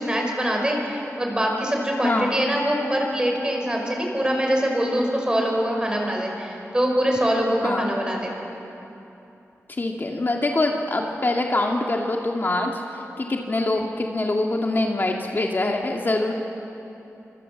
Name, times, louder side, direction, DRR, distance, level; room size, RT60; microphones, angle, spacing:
voice 1, 0.0-8.5, equal, 15° right, 1 dB, 5.3 m, -24 dB
voice 2, 2.0-2.3 7.6-7.9 9.7-16.4, left 2 dB, 40° left, 1 dB, 1.9 m, -24 dB
27.0 x 25.5 x 7.7 m, 2.9 s
wide cardioid pair, 110°, 5 cm